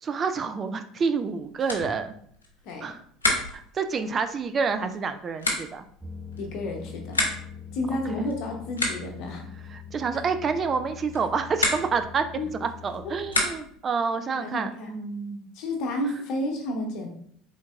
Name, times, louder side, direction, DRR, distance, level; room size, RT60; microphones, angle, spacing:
voice 1, 0.0-2.1 2.8-3.0 3.5-5.8 9.7-12.3 12.6-15.5, right 5 dB, 35° right, 9 dB, 0.3 m, -28 dB
sound 1, 1.1-13.9, left 2 dB, 85° left, 0.7 m, -33 dB
sound 2, 6.0-13.3, left 7 dB, 10° left, 0.6 m, -43 dB
voice 2, 6.4-7.2 7.7-9.5 12.4-12.5 13.2-13.3 14.4-14.9 15.5-17.1, left 1 dB, 55° left, 2 dB, 0.9 m, -31 dB
3.8 x 3.7 x 2.3 m, 0.64 s
figure-of-eight pair, 65°, 0 cm